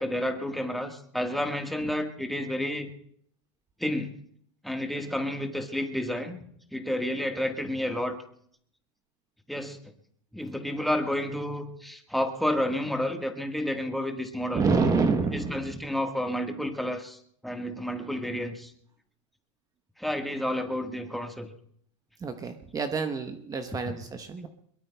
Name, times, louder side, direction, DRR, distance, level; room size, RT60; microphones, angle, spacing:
voice 1, 0.0-2.9 3.8-4.1 4.6-6.4 6.7-8.2 9.5-9.8 10.3-14.6 15.3-18.7 20.0-21.5, left 1 dB, ahead, 4 dB, 1.5 m, -30 dB
voice 2, 14.5-15.8 22.2-24.5, right 4 dB, 20° right, 7 dB, 1.0 m, -28 dB
22.5 x 22.0 x 2.3 m, 0.67 s
hypercardioid pair, 115°, 16 cm